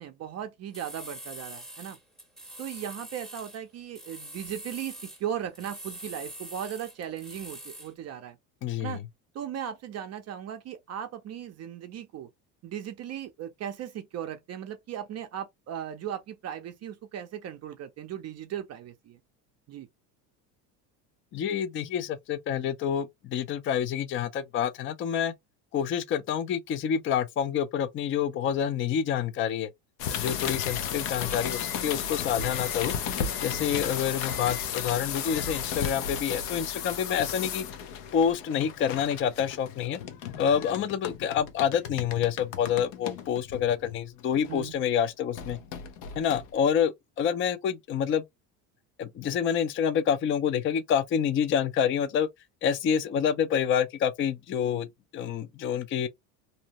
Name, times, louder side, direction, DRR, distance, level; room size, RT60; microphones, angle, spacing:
voice 1, 0.0-2.0 2.6-8.4 8.8-9.0 9.3-12.3 12.6-19.2 19.7-19.9 33.6-33.9 44.5-44.7, right 10 dB, 35° right, 0.5 m, -37 dB
sound 1, 0.7-3.6 3.9-5.2 5.5-7.9, right 1 dB, ahead, 0.7 m, -44 dB
voice 2, 8.6-9.0 21.3-25.3 25.7-29.7 30.1-32.9 33.4-37.6 38.1-40.0 40.4-45.6 46.2-46.9 47.2-48.2 49.0-52.3 52.6-54.9 55.1-56.1, left 8 dB, 30° left, 0.4 m, -27 dB
sound 2, 30.0-44.8 45.3-46.8, left 8 dB, 75° left, 0.8 m, -34 dB
2.7 x 2.0 x 2.8 m
supercardioid pair, 115°, 44 cm